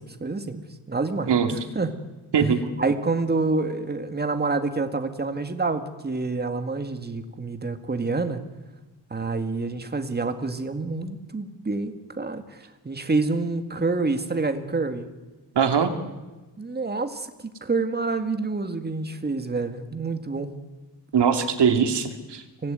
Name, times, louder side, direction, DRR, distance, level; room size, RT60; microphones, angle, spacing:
voice 1, 0.0-2.0 2.8-8.4 9.1-15.1 16.6-20.5 22.6-22.7, right 3 dB, 25° right, 8 dB, 1.9 m, -28 dB
voice 2, 15.6-15.9 21.1-22.4, right 7 dB, 80° right, 6 dB, 2.5 m, -21 dB
25.0 x 18.5 x 9.4 m, 1.2 s
wide cardioid pair, 135°, 41 cm